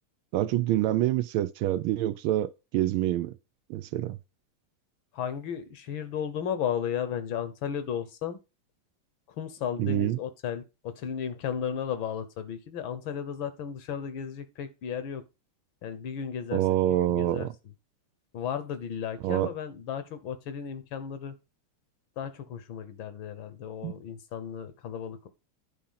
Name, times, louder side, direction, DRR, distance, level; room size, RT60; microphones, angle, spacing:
voice 1, 0.3-3.3 3.7-4.2 9.8-10.2 16.5-17.5 19.2-19.5 23.8-23.9, right 13 dB, 75° right, 1.4 m, -26 dB
voice 2, 5.1-8.4 9.4-15.2 15.8-17.5 18.3-21.4 22.2-25.3, left 8 dB, 70° left, 1.6 m, -34 dB
10.5 x 4.0 x 5.6 m
omnidirectional pair, 2.4 m